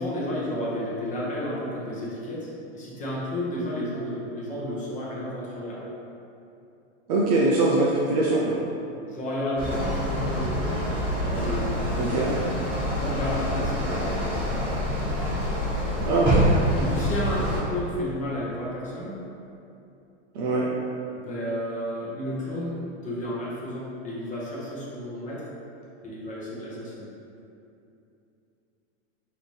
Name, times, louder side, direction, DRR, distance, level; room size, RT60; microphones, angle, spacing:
voice 1, 0.0-5.9 9.1-12.0 12.9-14.4 16.7-19.1 21.1-22.8 23.0-25.5 26.0-27.1, left 1 dB, 20° left, -6 dB, 0.9 m, -32 dB
voice 2, 7.1-8.6 12.0-12.3 16.0-16.5 20.3-20.7, right 2 dB, 35° right, -4 dB, 0.4 m, -22 dB
sound 1, 9.6-17.6, equal, 15° right, 1.5 m, -26 dB
5.1 x 2.8 x 3.1 m, 2.7 s
supercardioid pair, 140°, 38 cm